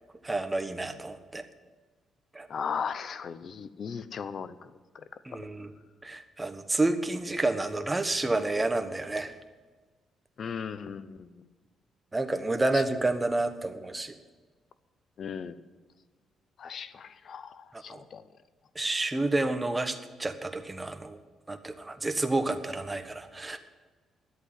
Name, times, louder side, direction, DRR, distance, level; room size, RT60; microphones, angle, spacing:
voice 1, 0.2-1.4 2.3-2.5 5.2-5.7 6.0-9.3 12.1-14.1 17.7-18.0 18.7-21.2 21.5-23.6, right 2 dB, 15° right, 8 dB, 1.2 m, -29 dB
voice 2, 2.5-4.6 10.4-11.5 12.7-12.8 15.2-15.6 16.6-18.2, left 6 dB, 55° left, 14 dB, 0.8 m, -37 dB
11.5 x 8.3 x 9.8 m, 1.3 s
cardioid pair, 90°, 0 cm